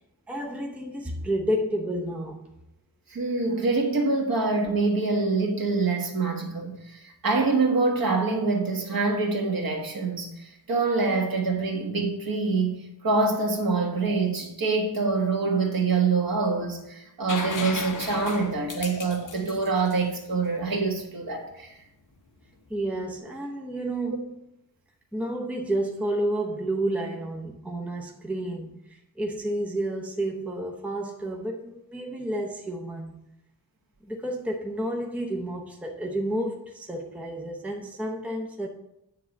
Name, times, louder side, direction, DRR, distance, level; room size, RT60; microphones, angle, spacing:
voice 1, 0.3-2.5 22.7-24.3 25.1-33.1 34.0-38.7, right 1 dB, 5° right, 0.7 m, -30 dB
voice 2, 3.1-21.8, right 3 dB, 60° right, 1.7 m, -25 dB
sound 1, 17.3-21.0 22.9-23.0, left 4 dB, 50° left, 0.8 m, -36 dB
9.4 x 3.7 x 7.1 m
wide cardioid pair, 170°, 40 cm